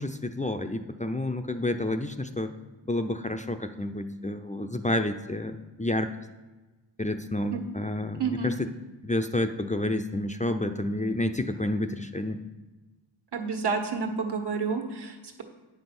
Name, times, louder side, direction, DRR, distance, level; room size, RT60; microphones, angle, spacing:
voice 1, 0.0-2.5 2.9-6.1 7.0-8.7 9.0-12.4, left 1 dB, 15° left, 6 dB, 0.7 m, -29 dB
voice 2, 8.2-8.5 13.3-15.4, right 5 dB, 60° right, 5 dB, 1.6 m, -30 dB
8.9 x 5.6 x 6.1 m, 1.2 s
cardioid pair, 55°, 46 cm